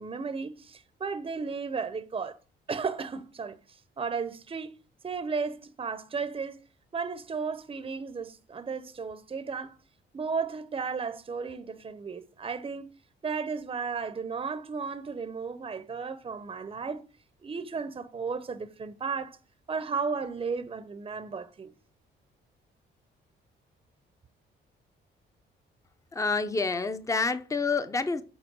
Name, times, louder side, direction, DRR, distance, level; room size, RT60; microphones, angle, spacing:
voice 1, 0.0-2.4 2.7-3.6 4.0-4.7 5.0-6.6 6.9-9.8 10.1-12.9 13.2-17.0 17.4-19.4 19.7-21.7, right 5 dB, 30° right, 0.7 m, -34 dB
voice 2, 26.1-28.2, left 4 dB, 15° left, 0.7 m, -28 dB
7.9 x 4.3 x 6.2 m
cardioid pair, 90°, 20 cm